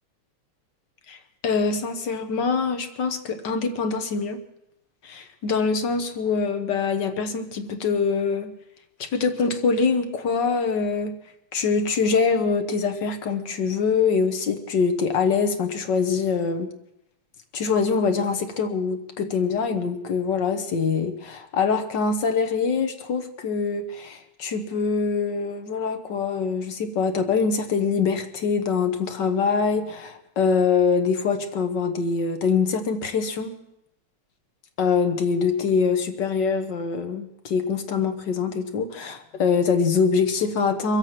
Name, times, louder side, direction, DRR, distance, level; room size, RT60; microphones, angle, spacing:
voice 1, 1.1-4.4 5.0-8.5 9.0-11.2 11.5-16.7 17.5-33.5 34.8-41.0, left 5 dB, 60° left, 7 dB, 1.7 m, -24 dB
24.0 x 8.2 x 5.8 m, 0.83 s
omnidirectional pair, 2.4 m